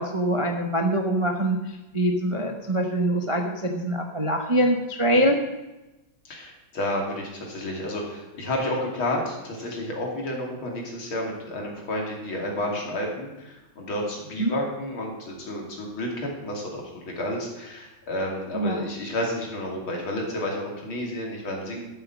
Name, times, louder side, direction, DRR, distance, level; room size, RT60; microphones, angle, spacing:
voice 1, 0.0-1.6 1.9-5.4 14.4-14.5 18.5-18.8, right 1 dB, 30° right, 3 dB, 0.6 m, -24 dB
voice 2, 6.3-21.8, left 1 dB, 75° left, -1 dB, 3.5 m, -31 dB
12.5 x 8.0 x 6.1 m, 1.0 s
omnidirectional pair, 2.3 m